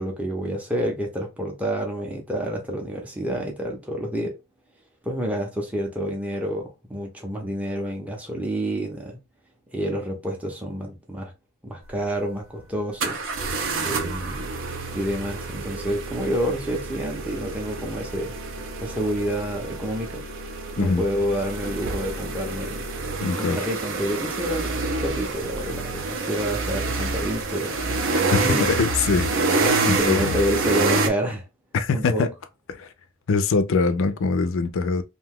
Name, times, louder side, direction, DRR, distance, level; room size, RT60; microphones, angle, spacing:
voice 1, 0.0-4.4 5.0-9.2 9.7-11.3 11.6-13.2 13.8-14.5 14.9-18.3 18.8-20.2 20.8-22.8 23.4-27.7 28.3-28.8 29.8-31.4 31.9-32.3, equal, 5° right, 0.6 m, -28 dB
sound 1, 11.8-11.9 13.0-31.1, right 3 dB, 60° right, 0.5 m, -27 dB
voice 2, 23.2-23.6 28.3-30.3 31.7-32.3 32.7-32.9 33.3-35.0, left 4 dB, 60° left, 0.4 m, -23 dB
2.7 x 2.2 x 3.5 m
head